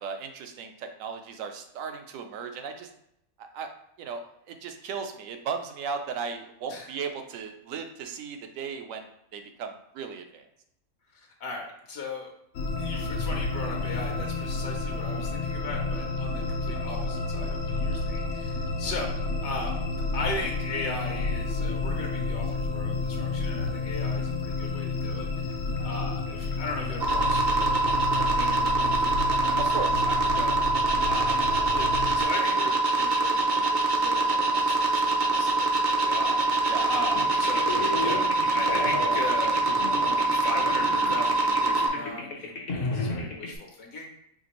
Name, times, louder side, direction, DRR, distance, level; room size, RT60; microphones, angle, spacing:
voice 1, 0.0-2.9 3.4-3.7 4.0-10.5 29.6-30.1 36.7-36.9, right 6 dB, 75° right, 5 dB, 1.0 m, -36 dB
voice 2, 11.4-12.3 12.8-19.1 19.4-19.7 20.1-25.6 25.8-27.8 28.1-31.4 31.7-37.7 38.0-39.6 40.0-44.2, left 3 dB, 75° left, 1 dB, 1.2 m, -38 dB
sound 1, 12.5-32.3, left 3 dB, 90° left, 1.1 m, -31 dB
sound 2, 27.0-41.9, right 2 dB, 55° right, 0.5 m, -24 dB
sound 3, 37.1-43.6, left 3 dB, 55° left, 0.5 m, -33 dB
5.1 x 2.8 x 3.0 m, 0.77 s
omnidirectional pair, 1.5 m